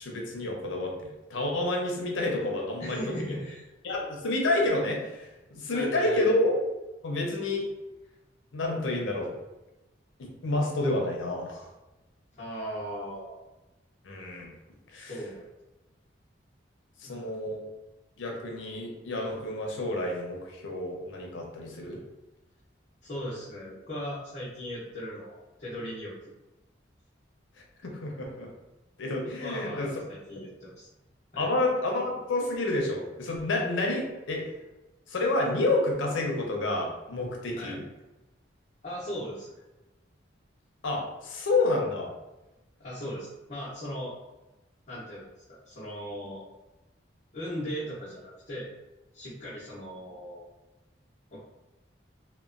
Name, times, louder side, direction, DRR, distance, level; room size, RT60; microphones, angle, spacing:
voice 1, 0.0-3.4 3.8-6.5 7.0-7.7 8.5-9.3 10.2-11.7 14.0-14.5 14.9-15.1 17.0-17.6 18.2-22.0 27.8-28.5 29.0-29.9 31.4-34.5 35.1-37.8 40.8-42.1, left 2 dB, 85° left, 0 dB, 0.6 m, -29 dB
voice 2, 2.8-3.6 5.7-6.4 12.4-13.4 15.1-15.5 17.0-17.3 23.0-26.1 29.4-30.9 31.3-31.5 37.6-37.8 38.8-39.5 42.8-44.1 44.9-46.4 47.3-48.7 49.1-50.4 51.3-51.4, equal, 40° left, -11 dB, 0.7 m, -38 dB
2.9 x 2.1 x 2.5 m, 1.0 s
head